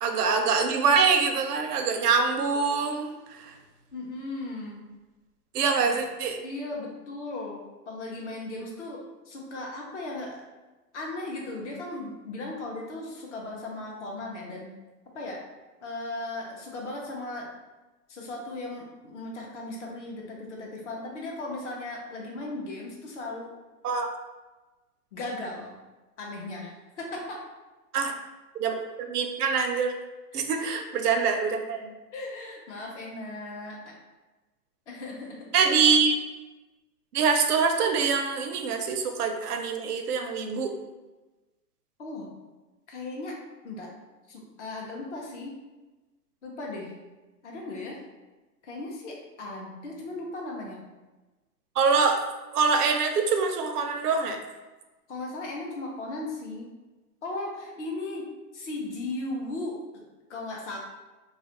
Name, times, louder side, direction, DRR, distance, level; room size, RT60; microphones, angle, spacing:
voice 1, 0.0-3.5 5.5-6.4 23.8-24.1 27.9-28.1 28.6-30.0 30.3-31.9 35.5-36.1 37.1-40.7 51.8-52.2 52.5-54.4, right 5 dB, 70° right, 5 dB, 0.5 m, -24 dB
voice 2, 3.9-4.8 5.8-6.0 6.4-10.4 10.9-14.7 15.1-15.4 15.8-17.5 18.1-23.5 25.1-25.8 26.2-27.4 30.3-30.6 32.1-33.9 34.9-35.7 42.0-42.3 42.9-43.4 43.6-43.9 44.3-45.6 46.4-46.9 47.4-48.0 48.6-50.8 55.1-56.7 57.2-59.8 60.3-60.8, left 2 dB, 50° left, -1 dB, 0.6 m, -37 dB
2.3 x 2.0 x 2.8 m, 1.1 s
hypercardioid pair, 160°, 48 cm